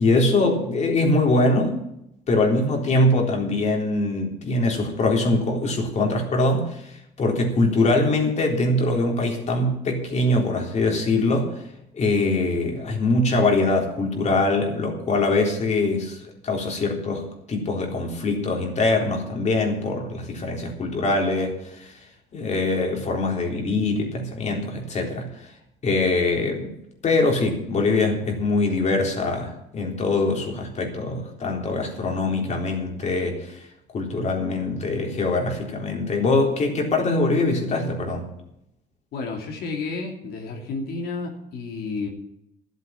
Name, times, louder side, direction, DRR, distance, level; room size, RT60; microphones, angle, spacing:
voice 1, 0.0-1.8 2.3-11.6 11.9-22.0 22.3-25.5 25.8-26.7 27.0-33.6 33.9-38.3, left 2 dB, 45° left, 1 dB, 3.7 m, -23 dB
voice 2, 39.1-42.1, left 3 dB, 70° left, 1 dB, 2.7 m, -31 dB
12.0 x 8.2 x 8.9 m, 0.80 s
cardioid pair, 110°, 17 cm